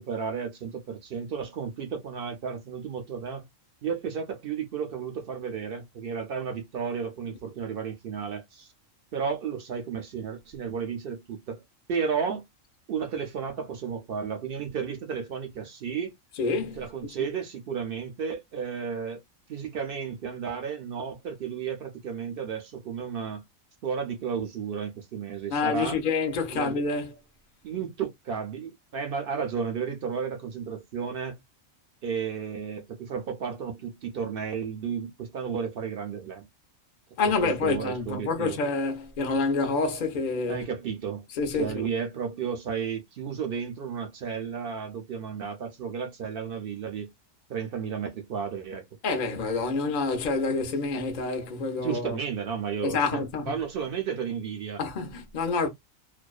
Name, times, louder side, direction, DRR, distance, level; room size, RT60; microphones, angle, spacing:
voice 1, 0.0-3.5 3.8-8.7 9.1-11.6 11.9-12.4 12.9-16.1 16.8-19.2 19.5-23.4 23.8-26.0 26.5-26.8 27.6-31.4 32.0-36.5 37.2-38.6 40.5-41.2 41.5-47.1 47.5-48.9 51.8-54.8, right 6 dB, 65° right, 0.6 m, -33 dB
voice 2, 16.4-16.8 25.5-27.1 37.2-40.6 41.4-41.8 49.0-52.2 52.8-53.5 54.8-55.7, left 4 dB, 50° left, 0.6 m, -27 dB
2.5 x 2.2 x 2.3 m
omnidirectional pair, 1.4 m